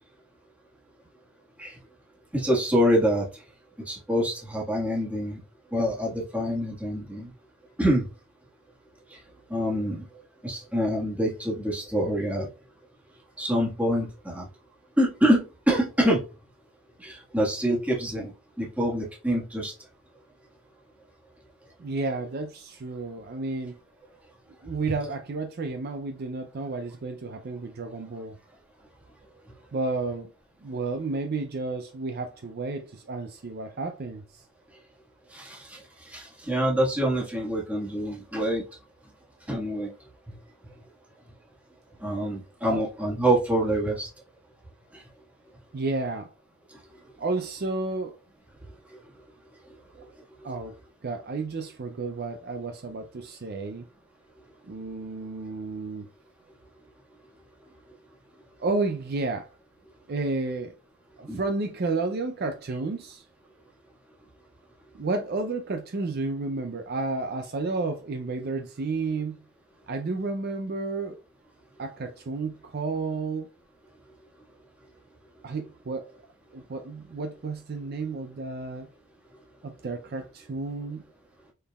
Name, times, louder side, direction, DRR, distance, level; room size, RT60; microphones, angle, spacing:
voice 1, 2.3-3.2 3.9-5.4 5.7-7.3 7.8-8.0 9.5-10.0 10.4-12.5 13.4-14.5 15.0-16.2 17.0-18.3 18.6-19.7 35.3-35.8 36.1-38.6 39.5-39.9 42.0-44.1 61.3-61.4, equal, 5° right, 1.4 m, -26 dB
voice 2, 21.8-23.8 24.6-28.4 29.7-30.3 30.6-34.4 42.7-42.8 45.7-46.3 47.2-48.2 50.4-50.8 51.0-53.9 54.7-56.1 58.6-59.5 60.1-60.7 61.2-63.2 64.9-69.4 69.9-71.2 71.8-73.5 75.4-76.1 76.5-78.9 79.6-81.0, right 3 dB, 45° right, 0.4 m, -31 dB
5.3 x 4.0 x 2.3 m
head